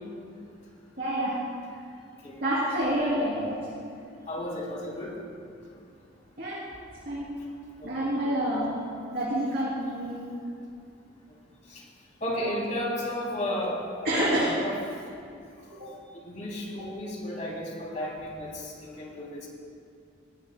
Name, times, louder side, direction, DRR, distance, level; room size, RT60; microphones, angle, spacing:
voice 1, 1.0-1.4 2.4-3.5 6.4-6.6 7.0-7.3 7.8-8.8 9.1-10.3 12.3-12.5 14.0-14.5, right 1 dB, 50° right, -8 dB, 3.2 m, -28 dB
voice 2, 4.3-5.1 7.8-7.9 11.7-11.8 12.2-14.3 14.6-14.8 16.2-19.5, left 1 dB, 40° left, -3 dB, 3.1 m, -33 dB
20.5 x 16.5 x 2.3 m, 2.5 s
head